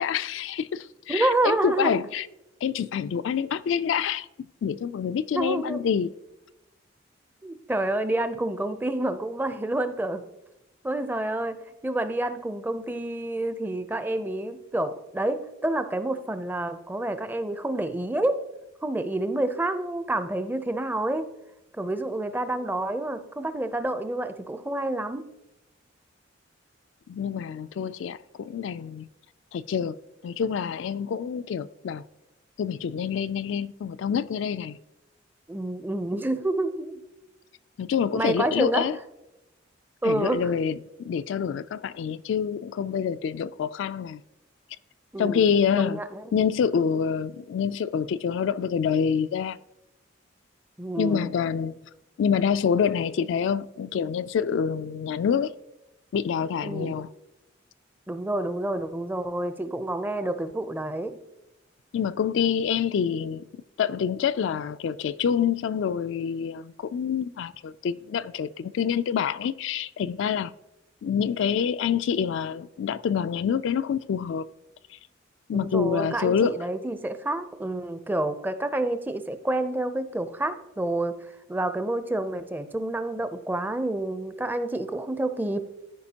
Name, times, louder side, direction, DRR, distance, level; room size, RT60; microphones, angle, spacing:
voice 1, 0.0-2.3 2.6-4.3 4.6-6.1 27.1-29.1 29.5-30.0 30.2-32.0 32.6-34.8 37.8-39.0 40.0-40.8 41.1-44.2 45.2-46.0 46.3-49.6 51.0-51.8 52.2-55.5 56.1-57.1 61.9-63.5 63.8-70.5 71.0-74.4 75.5-76.6, left 7 dB, 70° left, 0.3 m, -26 dB
voice 2, 1.1-2.0 5.3-5.8 7.4-10.2 10.8-18.4 18.8-21.3 21.7-25.3 35.5-37.0 38.1-38.9 40.0-40.5 45.1-45.5 45.8-46.2 50.8-51.3 56.6-57.0 58.1-61.2 75.5-81.2 81.5-85.7, right 2 dB, 10° right, 0.4 m, -28 dB
14.0 x 5.0 x 2.8 m
head